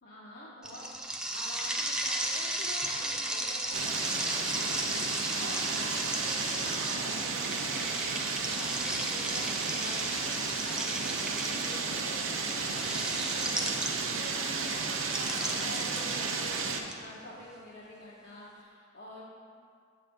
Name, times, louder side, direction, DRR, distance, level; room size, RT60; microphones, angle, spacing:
voice 1, 0.0-0.8 1.3-12.1 12.4-19.5, left 1 dB, 55° left, -9 dB, 1.1 m, -47 dB
sound 1, 0.6-14.3 15.0-16.9, right 1 dB, 5° right, 0.5 m, -35 dB
sound 2, 3.7-16.8, right 4 dB, 75° right, 0.7 m, -33 dB
7.9 x 3.3 x 6.4 m, 2.2 s
head